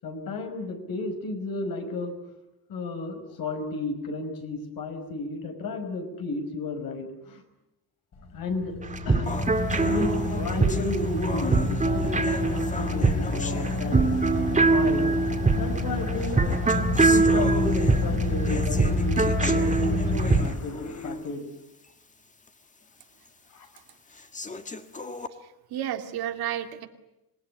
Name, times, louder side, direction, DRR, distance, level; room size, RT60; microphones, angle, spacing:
voice 1, 0.0-2.2 2.7-7.4 8.3-8.8 9.1-9.3 9.7-14.1 14.6-15.1 15.5-16.6 17.0-21.4 23.5-23.7, left 2 dB, 65° left, 7 dB, 5.4 m, -33 dB
Car / Idling, 8.2-21.1, left 2 dB, 45° left, 5.4 m, -29 dB
sound 1, 8.8-20.5, right 3 dB, 20° right, 2.3 m, -24 dB
sound 2, 9.3-14.4 15.3-15.4 16.1-21.4 21.8-21.9 22.5-22.6 23.2-23.3 24.1-25.3, left 3 dB, 20° left, 1.6 m, -37 dB
voice 2, 25.4-26.9, right 11 dB, 80° right, 6 dB, 2.6 m, -32 dB
26.5 x 21.0 x 9.9 m, 0.92 s
cardioid pair, 150°, 37 cm